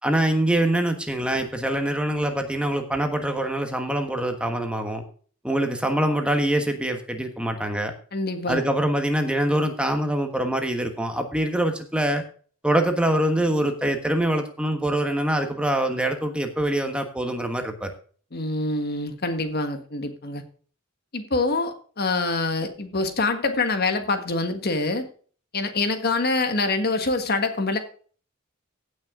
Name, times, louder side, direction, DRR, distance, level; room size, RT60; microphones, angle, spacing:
voice 1, 0.0-5.0 5.4-7.9 8.5-12.2 12.6-17.9, right 1 dB, 5° right, 5 dB, 1.3 m, -24 dB
voice 2, 8.1-8.6 18.3-20.4 21.1-25.1 25.5-27.8, left 3 dB, 50° left, 7 dB, 1.5 m, -25 dB
16.0 x 6.3 x 3.7 m, 0.43 s
head